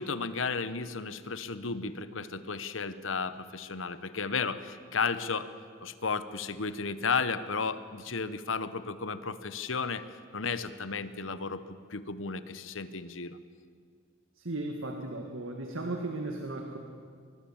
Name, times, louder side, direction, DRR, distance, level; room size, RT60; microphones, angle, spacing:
voice 1, 0.0-5.5 5.8-10.1 10.3-13.4, left 4 dB, 70° left, 13 dB, 1.1 m, -33 dB
voice 2, 14.4-16.8, right 2 dB, 75° right, 2 dB, 2.0 m, -36 dB
24.0 x 22.0 x 7.2 m, 2.1 s
head